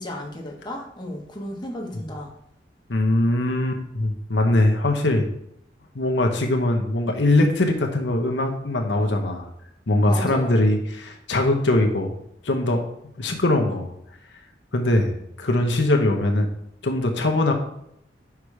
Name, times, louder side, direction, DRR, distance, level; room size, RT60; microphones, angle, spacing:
voice 1, 0.0-2.3 10.1-10.6, left 1 dB, 25° left, 1 dB, 1.2 m, -34 dB
voice 2, 2.9-5.3 5.9-9.5 9.9-12.2 12.4-12.8 13.2-13.9 14.7-16.5 16.8-17.5, left 1 dB, 80° left, 3 dB, 1.0 m, -21 dB
5.8 x 4.9 x 4.8 m, 0.75 s
head